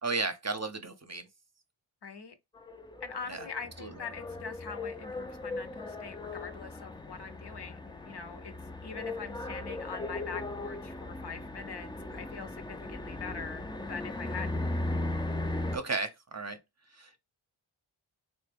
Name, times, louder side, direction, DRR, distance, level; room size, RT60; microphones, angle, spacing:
voice 1, 0.0-1.3 3.3-3.4 3.8-3.9 15.7-16.6 17.0-17.2, right 3 dB, 35° right, 0.7 m, -34 dB
voice 2, 2.0-2.3 3.0-8.5 8.8-14.6, left 5 dB, 55° left, 0.7 m, -43 dB
sound 1, 2.6-15.8, left 2 dB, 10° left, 0.4 m, -37 dB
3.3 x 2.1 x 3.4 m
cardioid pair, 45°, 49 cm